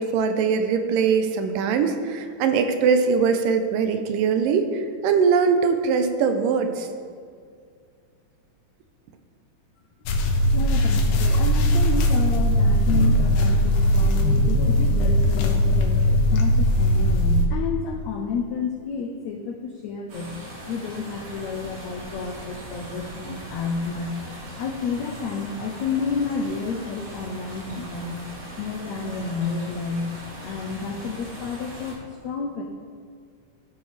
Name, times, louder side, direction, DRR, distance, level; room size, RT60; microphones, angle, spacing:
voice 1, 0.0-6.9, right 5 dB, 80° right, 7 dB, 2.2 m, -22 dB
sound 1, 10.1-17.4, equal, 70° left, 2.3 m, -19 dB
voice 2, 10.5-20.3 20.7-24.2 24.6-28.2 28.6-30.1 30.4-32.6, left 5 dB, 90° left, 2 dB, 1.6 m, -30 dB
sound 2, 20.1-32.0, right 1 dB, 55° right, 3.9 m, -40 dB
15.5 x 6.2 x 3.3 m, 2.2 s
omnidirectional pair, 4.0 m